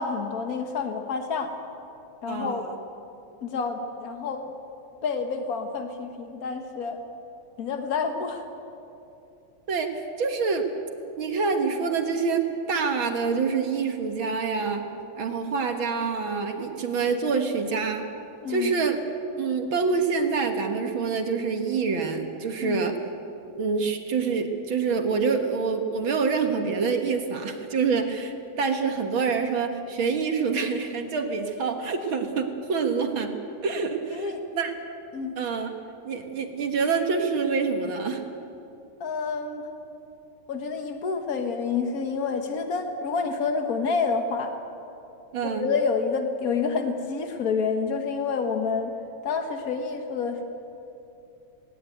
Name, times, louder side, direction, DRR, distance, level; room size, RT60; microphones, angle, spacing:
voice 1, 0.0-1.5 2.2-2.7 3.4-4.5 5.0-7.0 7.6-8.4 18.4-18.7 22.6-22.9 34.1-34.4 35.1-35.3 39.0-39.6 40.5-44.5 45.4-48.9 49.2-50.4, left 5 dB, 70° left, 5 dB, 0.8 m, -28 dB
voice 2, 2.3-2.8 9.7-10.7 11.2-14.8 15.2-18.1 18.5-19.0 19.4-22.9 23.6-34.7 35.4-35.7 36.0-38.2 45.3-45.7, right 5 dB, 50° right, 5 dB, 1.8 m, -26 dB
18.5 x 18.5 x 9.3 m, 2.8 s
omnidirectional pair, 3.4 m